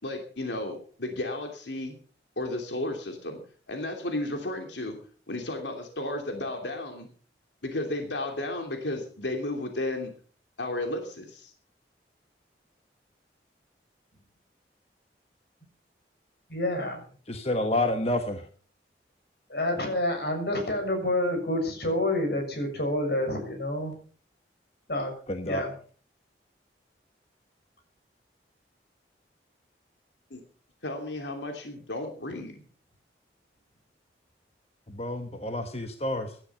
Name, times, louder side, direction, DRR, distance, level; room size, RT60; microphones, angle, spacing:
voice 1, 0.0-1.9 2.4-3.4 3.7-5.0 5.3-7.1 7.6-10.1 10.6-11.5 30.3-30.4 30.8-32.6, left 1 dB, 85° left, 4 dB, 2.9 m, -33 dB
voice 2, 16.5-17.0 19.5-23.9 24.9-25.1 25.4-25.7, left 1 dB, 60° left, 4 dB, 6.9 m, -28 dB
voice 3, 17.3-18.4 25.3-25.6 34.9-36.3, left 1 dB, 35° left, 6 dB, 1.3 m, -29 dB
17.5 x 12.0 x 5.8 m, 0.43 s
head